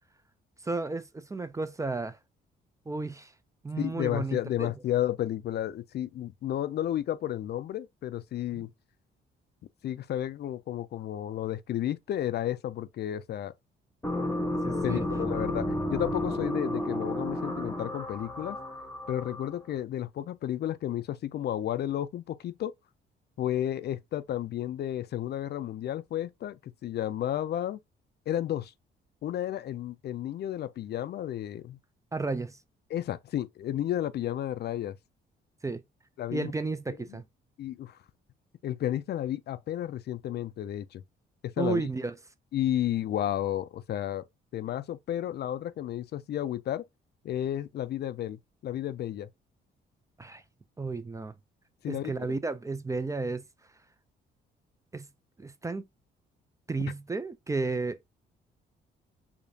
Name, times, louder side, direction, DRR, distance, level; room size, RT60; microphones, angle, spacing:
voice 1, 0.6-2.2 2.9-3.3 3.6-4.7 8.5-8.7 14.6-15.1 32.1-32.6 35.6-35.8 36.3-37.2 41.6-42.1 50.2-50.4 50.8-51.3 51.9-53.4 54.9-55.1 55.4-55.9 56.7-58.0, right 3 dB, 15° right, 0.4 m, -33 dB
voice 2, 3.8-8.7 9.8-13.5 14.8-18.6 19.1-22.7 23.4-27.8 28.3-28.7 29.2-31.8 32.9-35.0 36.2-36.5 36.9-37.2 37.6-38.0 38.6-41.0 41.4-41.8 42.5-44.2 44.5-46.8 47.2-49.3 51.8-52.1, left 12 dB, 55° left, 0.4 m, -32 dB
sound 1, 14.0-19.7, left 1 dB, 10° left, 0.8 m, -32 dB
4.9 x 2.5 x 2.6 m
cardioid pair, 90°, 20 cm